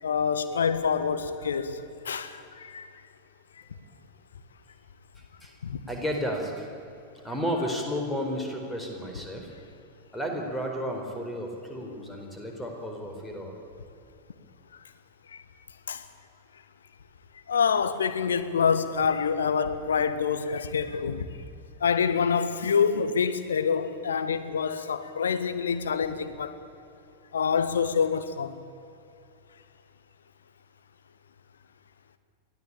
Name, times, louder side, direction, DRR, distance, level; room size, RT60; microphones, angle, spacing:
voice 1, 0.0-2.9 5.6-5.8 15.3-15.4 15.9-16.0 17.5-21.3 21.8-26.6 27.3-28.6, left 6 dB, 65° left, 1.5 m, -26 dB
voice 2, 5.9-6.7 7.2-9.5 10.1-13.5, equal, 5° left, 4.5 m, -32 dB
23.5 x 16.0 x 8.8 m
figure-of-eight pair, 90°, 0 cm